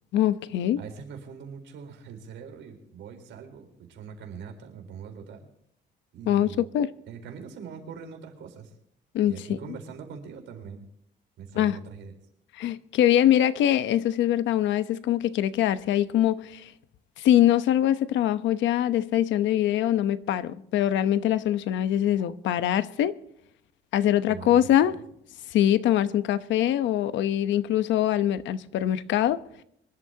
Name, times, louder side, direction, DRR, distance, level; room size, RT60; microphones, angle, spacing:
voice 1, 0.1-0.8 6.3-6.9 9.1-9.3 11.6-11.8 12.6-16.7 17.2-23.2 23.9-24.9 25.5-29.4, left 11 dB, 85° left, 0.9 m, -23 dB
voice 2, 0.8-5.5 6.1-6.6 7.1-8.7 9.2-10.9 11.4-12.1 24.3-25.0, right 6 dB, 80° right, 4.2 m, -42 dB
25.0 x 12.5 x 2.8 m
cardioid pair, 155°, 19 cm